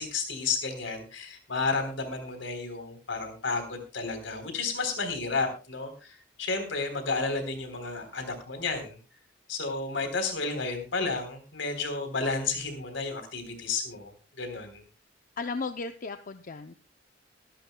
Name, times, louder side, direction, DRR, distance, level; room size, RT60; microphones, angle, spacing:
voice 1, 0.0-9.0 9.5-14.1 14.4-14.8, left 4 dB, 75° left, 7 dB, 3.7 m, -32 dB
voice 2, 15.4-16.8, left 4 dB, 45° left, 8 dB, 0.6 m, -35 dB
22.5 x 11.5 x 2.2 m, 0.31 s
head